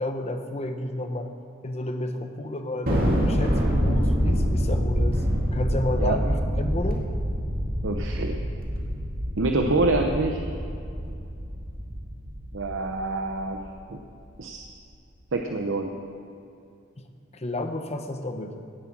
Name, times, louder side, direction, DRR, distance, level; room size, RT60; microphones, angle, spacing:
voice 1, 0.0-1.3 1.6-7.1 17.0-17.1 17.3-18.6, left 1 dB, 35° left, 6 dB, 1.0 m, -31 dB
Thunder, 2.9-13.5, equal, 50° right, 2.2 m, -26 dB
voice 2, 7.8-8.4 9.4-10.4 12.5-13.6 13.9-14.0 14.4-14.6 15.3-15.9, right 2 dB, 80° right, 3 dB, 0.8 m, -26 dB
17.0 x 7.6 x 6.1 m, 2.5 s
head